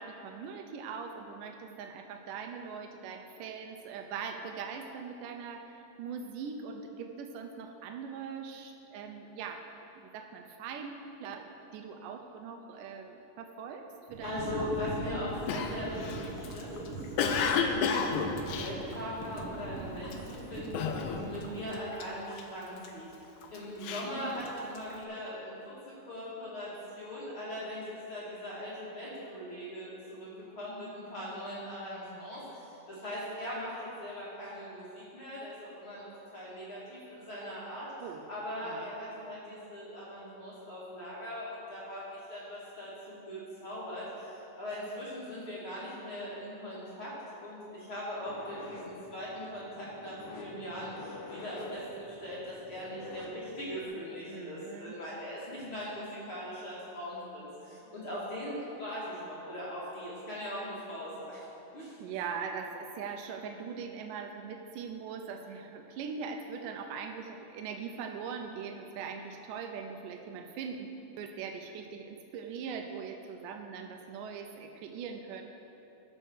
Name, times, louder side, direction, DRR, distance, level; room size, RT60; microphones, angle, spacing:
voice 1, 0.0-9.7 10.0-14.8 23.9-24.5 38.0-38.3 38.6-38.9 54.3-55.0 62.0-70.9 71.1-75.4, right 6 dB, 90° right, 4 dB, 2.3 m, -41 dB
sound 1, 14.1-21.6, right 2 dB, 55° right, 1.7 m, -41 dB
voice 2, 14.2-18.0 18.3-23.1 23.5-26.7 27.0-29.9 30.2-30.3 30.6-37.9 38.3-47.1 47.4-61.4 61.7-62.0, left 1 dB, 40° left, -8 dB, 2.9 m, -40 dB
Cough, 15.5-19.6 20.0-20.4 20.7-21.5 21.7-22.9 23.4-24.9, left 6 dB, 80° left, 2.1 m, -32 dB
sound 2, 48.2-53.9, left 2 dB, 65° left, 1.9 m, -47 dB
14.5 x 5.6 x 6.3 m, 3.0 s
omnidirectional pair, 3.7 m